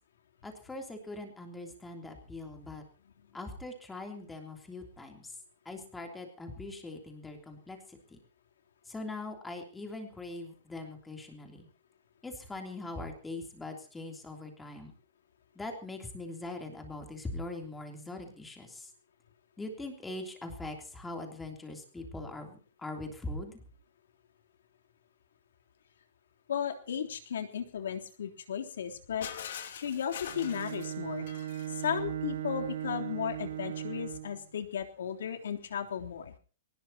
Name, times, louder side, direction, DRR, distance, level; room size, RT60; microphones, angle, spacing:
voice 1, 0.4-2.8 3.3-5.3 5.6-8.2 8.9-11.7 12.2-14.9 15.5-18.9 19.6-23.6, left 2 dB, 5° left, 4 dB, 3.2 m, -42 dB
voice 2, 26.5-31.3 31.8-36.3, left 8 dB, 75° left, 5 dB, 3.4 m, -35 dB
Shatter, 29.2-32.0, left 9 dB, 60° left, 3.1 m, -43 dB
Bowed string instrument, 30.3-34.4, right 12 dB, 65° right, 1.9 m, -38 dB
22.5 x 19.0 x 2.9 m, 0.39 s
hypercardioid pair, 175°, 0 cm